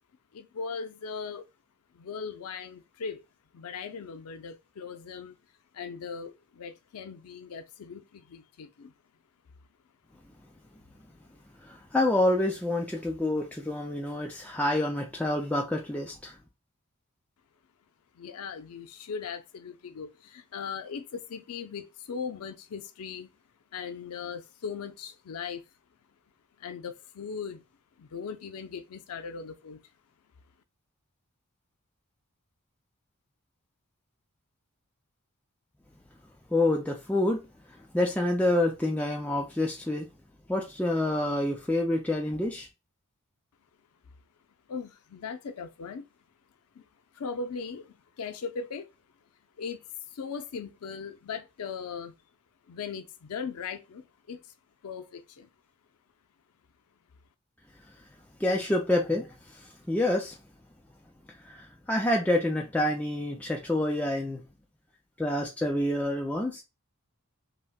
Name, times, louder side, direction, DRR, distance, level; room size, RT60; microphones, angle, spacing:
voice 1, 0.3-1.5 1.9-3.2 3.5-5.4 5.7-8.9 18.1-23.3 23.7-25.6 26.6-27.6 28.0-29.8 44.7-46.1 46.7-46.8 47.1-48.9 49.6-52.1 52.7-54.4 54.8-55.5, left 5 dB, 85° left, 0.4 m, -39 dB
voice 2, 11.6-16.4 36.5-37.4 37.7-40.1 40.5-42.7 58.4-60.4 61.3-64.4 65.2-66.6, left 1 dB, 5° left, 0.3 m, -28 dB
3.9 x 2.1 x 2.2 m
head